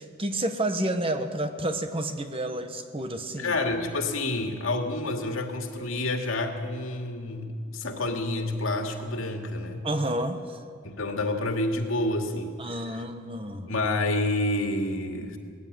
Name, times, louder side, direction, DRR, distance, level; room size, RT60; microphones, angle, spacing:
voice 1, 0.0-3.5 9.8-10.6 12.6-13.7, right 1 dB, 25° right, 8 dB, 1.2 m, -30 dB
voice 2, 3.4-9.9 10.8-12.6 12.9-13.0 13.7-15.4, left 2 dB, 85° left, 4 dB, 2.3 m, -29 dB
19.5 x 15.5 x 9.5 m, 2.1 s
head